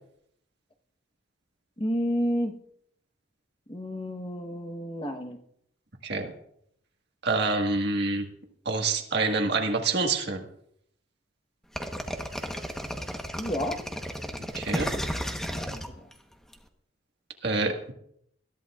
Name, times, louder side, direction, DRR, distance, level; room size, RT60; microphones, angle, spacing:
voice 1, 1.8-2.5 3.7-5.4 13.4-13.8 14.8-15.0 15.5-15.8, equal, 30° left, 4 dB, 1.1 m, -30 dB
voice 2, 7.2-8.2 8.6-10.4 14.5-14.9 17.4-17.9, right 3 dB, 60° right, 2 dB, 1.6 m, -26 dB
sound 1, 11.8-16.5, equal, ahead, 1.0 m, -33 dB
21.0 x 14.0 x 2.4 m, 0.72 s
head